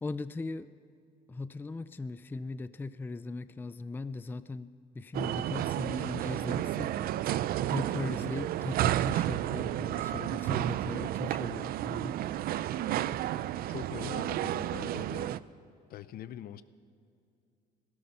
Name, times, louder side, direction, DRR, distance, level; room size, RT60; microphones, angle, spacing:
voice 1, 0.0-0.7 1.3-7.0 7.7-12.2, left 3 dB, 10° left, 14 dB, 0.4 m, -39 dB
sound 1, 5.1-15.4, right 13 dB, 65° right, 0.4 m, -32 dB
voice 2, 13.7-15.4 15.9-16.6, left 11 dB, 65° left, 15 dB, 0.6 m, -43 dB
17.0 x 13.0 x 5.6 m, 2.5 s
cardioid pair, 110°, 17 cm